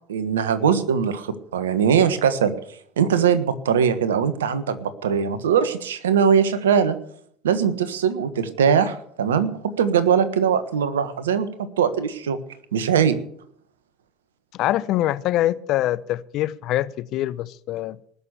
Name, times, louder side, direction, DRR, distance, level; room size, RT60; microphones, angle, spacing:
voice 1, 0.1-2.5 3.0-7.0 7.4-9.5 9.8-12.4 12.7-13.2, right 7 dB, 85° right, 1.4 m, -21 dB
voice 2, 14.5-18.0, left 14 dB, 55° left, 0.7 m, -24 dB
19.5 x 6.8 x 8.8 m
hypercardioid pair, 75°, 0 cm